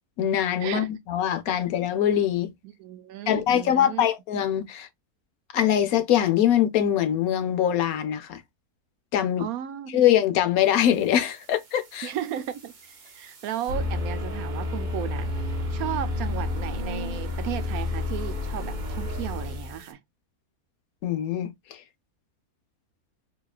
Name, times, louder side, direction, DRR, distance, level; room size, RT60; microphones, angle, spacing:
voice 1, 0.2-2.5 3.3-4.9 5.5-8.4 9.1-9.4 9.9-12.1 21.0-21.5, left 10 dB, 70° left, 1.1 m, -23 dB
voice 2, 2.6-4.0 9.4-10.0 12.0-15.3 15.7-20.0, right 11 dB, 75° right, 1.0 m, -35 dB
sound 1, 11.3-19.9, left 2 dB, 40° right, 0.8 m, -31 dB
4.5 x 2.9 x 2.3 m
omnidirectional pair, 1.6 m